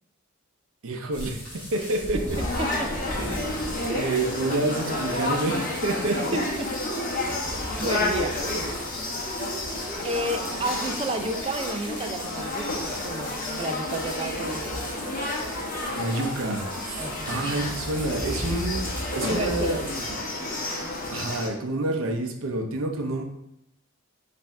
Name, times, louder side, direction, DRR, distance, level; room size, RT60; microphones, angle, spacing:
voice 1, 0.8-2.4 3.2-3.4 3.9-6.2 16.0-20.3 21.1-23.2, right 2 dB, 75° right, 4 dB, 0.6 m, -28 dB
sound 1, 1.1-20.1, equal, 10° left, 1.3 m, -38 dB
sound 2, 2.3-21.5, left 2 dB, 40° left, 1.0 m, -31 dB
voice 2, 2.4-2.9 3.9-4.2 6.3-6.4 7.8-8.3 10.0-15.0 17.0-17.4 19.3-19.9, right 1 dB, 25° right, 6 dB, 0.4 m, -31 dB
4.3 x 2.7 x 4.5 m, 0.80 s
head